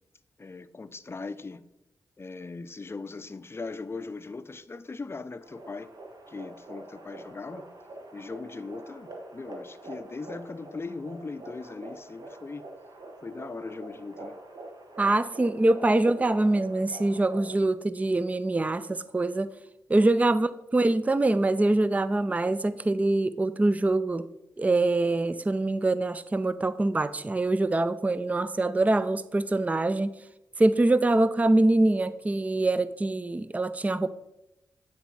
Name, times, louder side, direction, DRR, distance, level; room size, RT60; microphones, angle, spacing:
voice 1, 0.4-1.6 2.2-5.9 6.3-7.7 8.1-12.6 13.2-14.4, left 3 dB, 35° left, 0.5 m, -39 dB
sound 1, 5.4-17.6, right 2 dB, 60° right, 1.3 m, -45 dB
voice 2, 15.0-19.5 19.9-24.3 24.6-30.2 30.6-34.1, right 2 dB, 20° right, 0.4 m, -24 dB
9.0 x 4.1 x 4.7 m
supercardioid pair, 45°, 8 cm